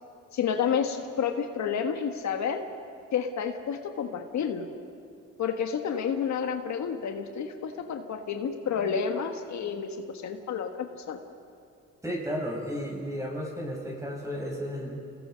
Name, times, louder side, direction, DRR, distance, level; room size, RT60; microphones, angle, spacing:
voice 1, 0.3-2.6 3.1-4.7 5.4-11.2, left 7 dB, 65° left, 5 dB, 1.5 m, -30 dB
voice 2, 12.0-15.1, equal, 10° right, -1 dB, 6.5 m, -33 dB
29.5 x 19.5 x 5.2 m, 2.6 s
cardioid pair, 90°, 30 cm